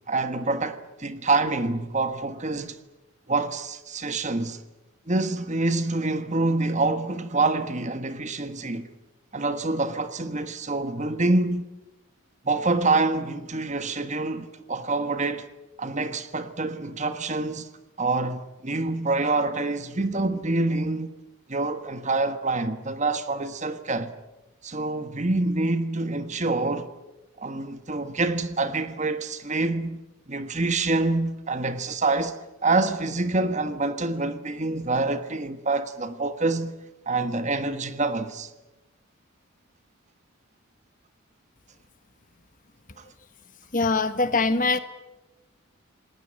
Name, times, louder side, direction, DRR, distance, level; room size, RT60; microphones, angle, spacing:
voice 1, 0.1-2.8 3.3-4.6 5.1-8.9 9.3-11.7 12.4-15.5 15.8-17.7 18.0-21.1 21.5-24.1 24.6-26.9 27.4-30.0 30.3-36.7 37.1-38.5, right 3 dB, 35° right, 1.4 m, -26 dB
voice 2, 43.7-44.8, left 3 dB, 40° left, 1.4 m, -22 dB
28.5 x 19.5 x 8.9 m
head